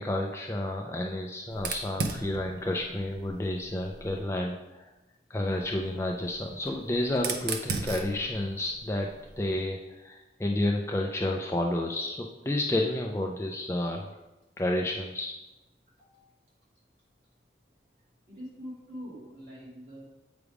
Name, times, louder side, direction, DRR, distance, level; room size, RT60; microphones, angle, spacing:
voice 1, 0.0-4.9 5.3-9.1 9.4-14.1 14.6-15.3, left 1 dB, 15° left, 1 dB, 0.4 m, -30 dB
Fire, 1.5-4.3 5.4-9.7, right 4 dB, 60° right, 0.6 m, -38 dB
voice 2, 18.3-20.0, equal, 40° right, -6 dB, 2.2 m, -44 dB
8.1 x 3.5 x 4.8 m, 1.0 s
head